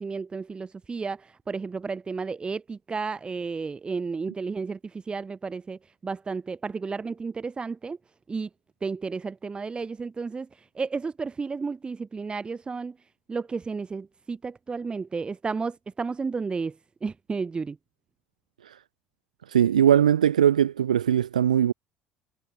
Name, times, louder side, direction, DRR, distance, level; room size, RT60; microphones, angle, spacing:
voice 1, 0.0-8.0 8.3-8.5 8.8-12.9 13.3-16.8 17.0-17.8, right 4 dB, 25° right, 2.6 m, -32 dB
voice 2, 19.5-21.7, right 9 dB, 80° right, 0.7 m, -20 dB
figure-of-eight pair, 60°, 4 cm